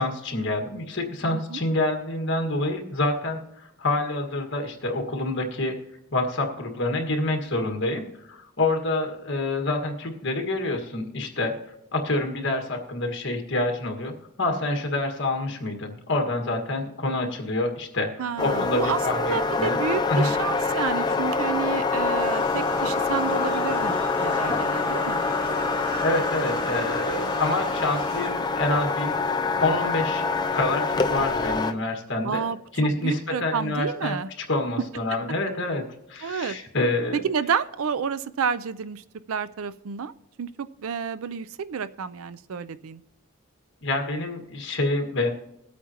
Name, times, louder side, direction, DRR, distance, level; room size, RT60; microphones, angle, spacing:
voice 1, 0.0-5.8 6.1-11.5 11.9-14.1 14.4-19.8 20.1-20.3 26.0-30.2 30.5-32.4 32.7-34.2 34.5-35.8 36.1-37.2 43.8-45.3, left 2 dB, 55° left, 3 dB, 1.7 m, -27 dB
voice 2, 18.2-25.2 32.2-32.6 33.0-34.3 36.2-36.6 37.1-40.1 40.4-43.0, right 6 dB, 70° right, 14 dB, 0.4 m, -30 dB
sound 1, 18.4-31.7, left 3 dB, 20° left, 0.4 m, -26 dB
sound 2, 22.2-28.3, equal, 20° right, 2.2 m, -38 dB
21.5 x 8.3 x 2.9 m, 0.86 s
head